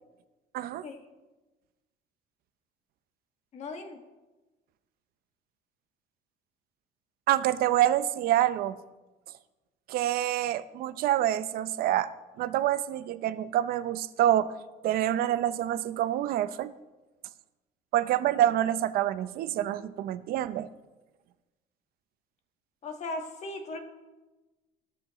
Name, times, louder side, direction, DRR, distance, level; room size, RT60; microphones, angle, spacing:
voice 1, 0.5-0.8 7.3-8.7 9.9-12.1 12.4-14.5 14.8-16.7 17.9-20.7, right 12 dB, 55° right, 13 dB, 0.6 m, -27 dB
voice 2, 3.5-4.0 22.8-23.8, left 2 dB, 40° left, 5 dB, 1.4 m, -37 dB
16.0 x 13.0 x 3.0 m, 1.1 s
cardioid pair, 165°, 18 cm